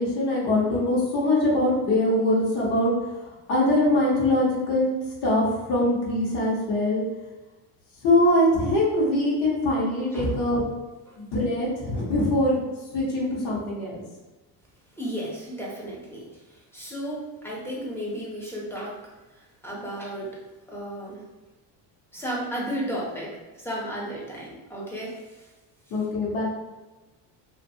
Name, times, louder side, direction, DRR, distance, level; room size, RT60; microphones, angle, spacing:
voice 1, 0.0-2.9 3.5-4.9 5.2-7.0 8.0-10.6 11.2-12.6 12.9-14.0 25.9-26.4, left 1 dB, 65° left, -5 dB, 1.1 m, -23 dB
voice 2, 15.0-19.0 19.3-20.4 20.7-21.2 22.1-23.3 23.6-25.2, right 1 dB, 5° left, -5 dB, 0.7 m, -33 dB
2.5 x 2.5 x 2.7 m, 1.1 s
cardioid pair, 125°, 42 cm